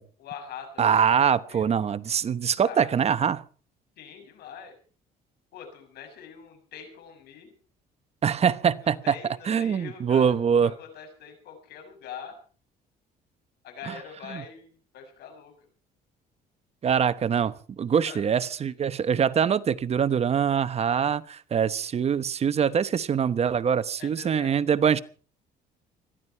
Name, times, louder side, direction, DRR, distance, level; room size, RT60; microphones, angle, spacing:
voice 1, 0.2-1.8 2.6-2.9 4.0-4.7 5.5-7.5 8.8-12.4 13.6-15.5 18.1-18.3 24.0-24.5, left 7 dB, 70° left, 7.1 m, -43 dB
voice 2, 0.8-3.4 8.2-9.1 9.5-10.7 14.3-14.4 16.8-25.0, right 7 dB, 40° right, 1.0 m, -24 dB
21.5 x 14.0 x 4.6 m
cardioid pair, 110°, 17 cm